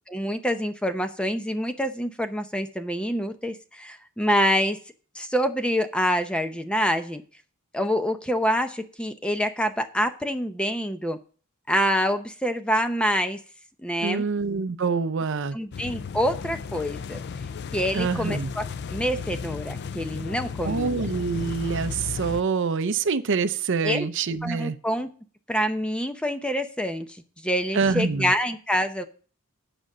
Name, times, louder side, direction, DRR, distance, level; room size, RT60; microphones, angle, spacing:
voice 1, 0.1-4.8 5.1-7.2 7.7-11.2 11.7-13.4 13.8-14.2 15.5-17.2 17.7-18.6 18.9-21.0 23.8-24.1 24.4-25.1 25.5-27.1 27.4-29.0, equal, 5° left, 0.7 m, -26 dB
voice 2, 14.0-15.6 17.9-18.5 20.6-24.8 27.7-28.3, right 5 dB, 60° right, 0.6 m, -26 dB
sound 1, 15.7-22.4, left 5 dB, 50° left, 0.4 m, -34 dB
9.0 x 5.2 x 7.3 m
head